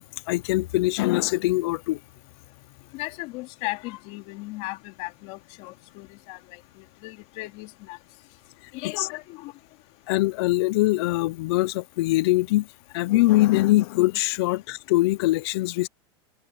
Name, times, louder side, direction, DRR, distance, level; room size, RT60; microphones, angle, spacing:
voice 1, 0.0-2.0 9.0-9.1 10.1-12.7 12.9-15.9, left 18 dB, 70° left, 0.8 m, -22 dB
voice 2, 2.9-6.4 7.0-8.0 8.7-9.5, left 21 dB, 55° left, 2.9 m, -36 dB
supercardioid pair, 145°, 14 cm